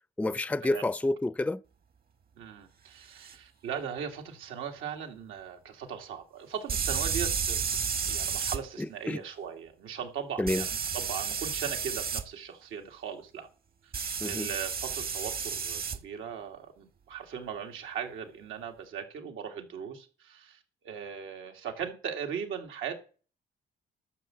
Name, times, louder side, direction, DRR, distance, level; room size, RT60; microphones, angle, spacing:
voice 1, 0.2-1.6 9.1-9.2 10.4-10.6 14.2-14.5, left 2 dB, 5° left, 0.5 m, -29 dB
voice 2, 2.4-13.5 13.8-13.9 14.2-22.9, right 7 dB, 90° right, 2.1 m, -39 dB
sound 1, 3.2-3.3 6.7-8.6 10.5-12.2 13.9-16.0, right 6 dB, 50° right, 1.2 m, -31 dB
12.5 x 6.6 x 7.5 m
cardioid pair, 90°, 20 cm